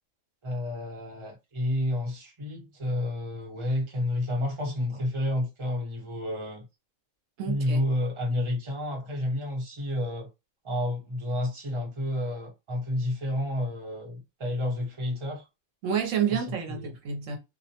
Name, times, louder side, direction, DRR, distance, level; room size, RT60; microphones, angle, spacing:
voice 1, 0.4-6.6 7.5-10.3 10.6-15.4 16.3-16.4 16.7-16.9, left 1 dB, 25° right, 0.9 m, -30 dB
voice 2, 7.4-7.8 15.8-17.4, right 8 dB, 80° right, 1.0 m, -29 dB
2.4 x 2.1 x 2.8 m
omnidirectional pair, 1.3 m